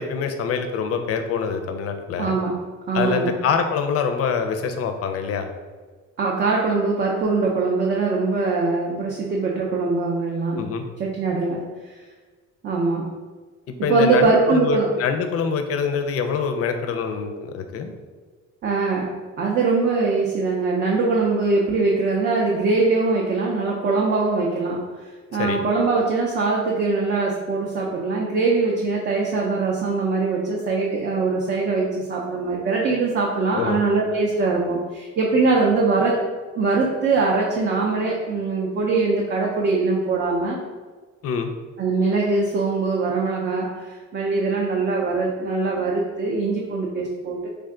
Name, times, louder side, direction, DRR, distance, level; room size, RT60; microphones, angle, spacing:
voice 1, 0.0-2.3 2.9-5.5 10.5-10.9 13.7-17.9 25.4-25.6 33.5-33.8 41.2-41.5, left 6 dB, 55° left, 6 dB, 0.4 m, -25 dB
voice 2, 2.2-3.4 6.2-10.7 11.0-11.9 12.6-13.1 13.8-14.9 18.6-36.2 36.6-40.6 41.8-47.5, right 3 dB, 40° right, -2 dB, 0.5 m, -22 dB
3.4 x 2.2 x 3.6 m, 1.4 s
cardioid pair, 135°, 29 cm